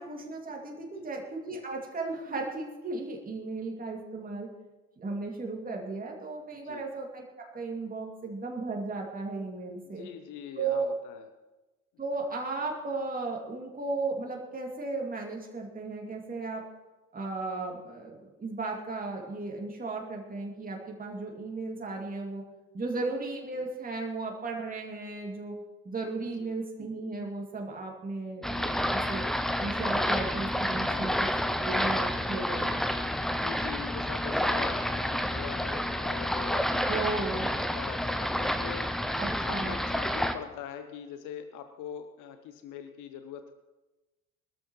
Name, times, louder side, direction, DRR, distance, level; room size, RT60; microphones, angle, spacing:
voice 1, 0.0-4.5 5.0-10.1 10.6-10.9 12.0-16.6 17.1-22.4 22.7-25.6 25.8-29.3 29.6-32.7 36.9-37.5 39.2-39.8, right 3 dB, 20° right, 0 dB, 2.5 m, -35 dB
voice 2, 9.8-11.3 22.9-23.0 26.2-26.5 30.7-31.1 33.3-38.9 39.4-43.5, left 9 dB, 40° left, 8 dB, 1.0 m, -43 dB
sound 1, 28.4-40.3, equal, ahead, 0.7 m, -29 dB
22.0 x 13.0 x 3.1 m, 1.1 s
figure-of-eight pair, 65°, 46 cm